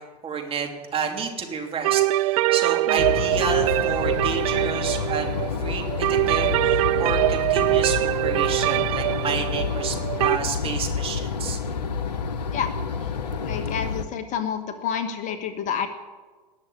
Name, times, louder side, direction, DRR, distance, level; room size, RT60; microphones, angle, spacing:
voice 1, 0.2-11.6, right 5 dB, 25° right, 2 dB, 3.0 m, -30 dB
sound 1, 1.8-10.4, right 18 dB, 55° right, 0.4 m, -23 dB
sound 2, 3.0-14.0, left 6 dB, 75° left, 1.1 m, -29 dB
voice 2, 13.4-15.9, left 8 dB, 35° left, 8 dB, 1.4 m, -29 dB
19.0 x 7.4 x 9.6 m, 1.4 s
hypercardioid pair, 95°, 21 cm